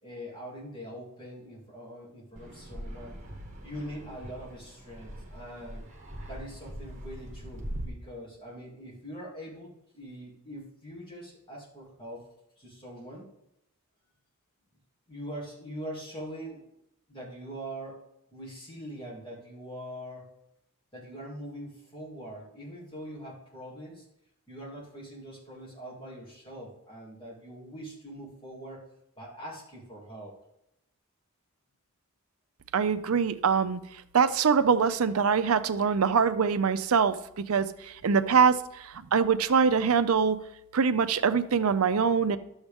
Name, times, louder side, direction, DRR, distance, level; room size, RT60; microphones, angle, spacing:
voice 1, 0.0-3.1 3.6-5.8 6.3-12.3 12.6-13.3 15.1-16.7 17.1-18.0 18.3-20.3 20.9-24.1 24.5-28.8 29.2-30.3, equal, 20° left, -5 dB, 2.6 m, -43 dB
Fixed-wing aircraft airplane, 2.4-7.9, equal, 35° right, 1.4 m, -42 dB
voice 2, 32.7-33.8 34.1-40.4 40.7-42.4, right 6 dB, 75° right, 12 dB, 0.5 m, -24 dB
11.0 x 7.1 x 3.5 m, 0.82 s
head